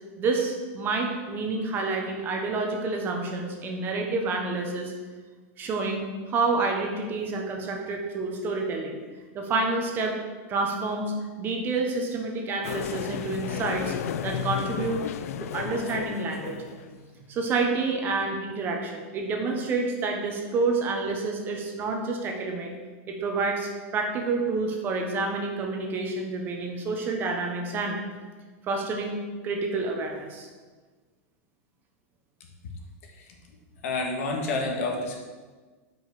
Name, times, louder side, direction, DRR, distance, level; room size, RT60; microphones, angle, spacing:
voice 1, 0.2-4.9 5.6-9.0 9.3-10.1 10.5-11.1 11.4-13.9 14.2-15.1 15.4-16.6 17.3-22.8 23.1-28.0 28.6-29.2 29.4-30.5, right 3 dB, 25° right, 2 dB, 1.1 m, -28 dB
sound 1, 12.6-17.0, left 9 dB, 85° left, 0.4 m, -33 dB
voice 2, 33.8-35.2, left 3 dB, 70° left, 1 dB, 1.8 m, -29 dB
6.1 x 5.3 x 6.8 m, 1.3 s
supercardioid pair, 155°, 8 cm